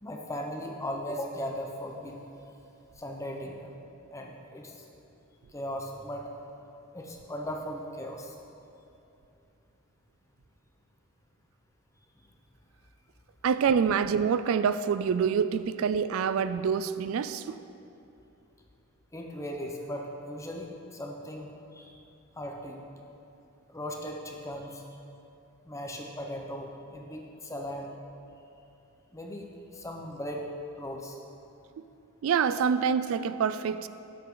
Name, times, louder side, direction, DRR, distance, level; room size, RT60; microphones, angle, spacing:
voice 1, 0.0-2.2 3.0-3.7 4.1-4.8 5.5-6.3 6.9-8.4 12.2-12.3 19.1-22.0 22.4-22.8 23.7-24.8 25.6-27.9 29.1-30.5 30.8-31.2, equal, 15° left, 1 dB, 0.9 m, -38 dB
voice 2, 13.4-17.6 32.2-33.9, right 6 dB, 70° right, 13 dB, 0.3 m, -26 dB
11.5 x 8.8 x 3.9 m, 2.8 s
head